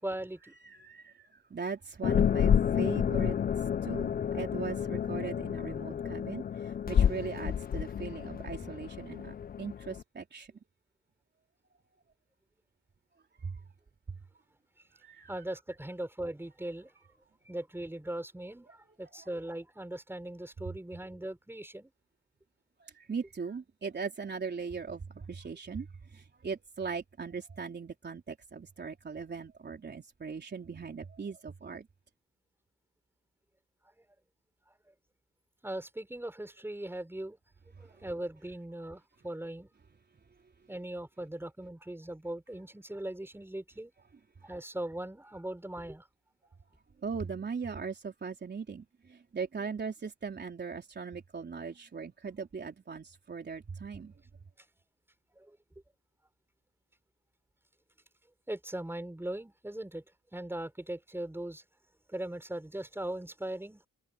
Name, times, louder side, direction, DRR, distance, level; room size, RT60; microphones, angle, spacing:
voice 1, 0.0-0.5 15.3-16.9 17.4-21.9 34.9-35.0 35.6-37.4 37.8-39.7 40.7-43.9 44.4-46.1 55.4-55.6 58.5-60.0 60.3-61.6 62.1-63.9, right 1 dB, 10° right, 5.9 m, -39 dB
voice 2, 0.6-3.4 3.8-10.5 13.4-13.6 15.0-15.3 22.9-25.9 26.1-31.9 47.0-54.1, right 5 dB, 35° right, 3.9 m, -39 dB
sound 1, 2.0-10.0, left 8 dB, 30° left, 0.5 m, -30 dB
cardioid pair, 90°, 30 cm